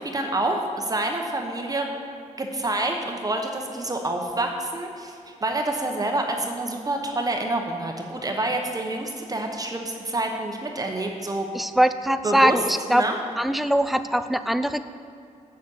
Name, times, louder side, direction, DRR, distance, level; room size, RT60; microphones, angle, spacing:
voice 1, 0.0-1.9 2.4-11.5 12.2-12.6 12.9-13.2, right 2 dB, 30° right, 2 dB, 0.9 m, -27 dB
voice 2, 11.5-13.0 13.4-14.8, equal, ahead, 10 dB, 0.4 m, -22 dB
8.2 x 7.1 x 6.3 m, 2.5 s
wide cardioid pair, 115°, 13 cm